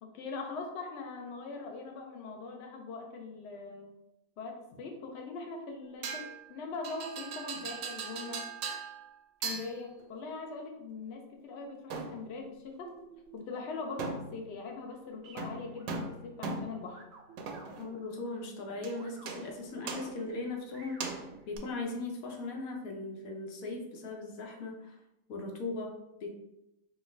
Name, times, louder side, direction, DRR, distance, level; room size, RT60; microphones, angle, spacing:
voice 1, 0.0-3.9 4.4-8.5 9.4-13.0 13.3-17.0, left 4 dB, 60° left, 3 dB, 0.8 m, -41 dB
sound 1, 6.0-6.7 7.5-8.6 9.5-11.5 12.8-14.7 15.2-16.5 16.8-21.6, right 3 dB, 60° right, 0.7 m, -56 dB
sound 2, 6.0-6.5 6.8-9.2 9.4-10.0 11.9-12.4 14.0-14.6 15.4-17.0 17.4-17.9 18.8-19.0 19.3-19.6 19.9-20.3 21.0-21.6, right 4 dB, 85° right, 1.0 m, -39 dB
voice 2, 17.8-25.0 25.3-26.3, left 2 dB, 85° left, 2 dB, 1.1 m, -39 dB
4.6 x 2.2 x 3.1 m, 0.89 s
omnidirectional pair, 1.4 m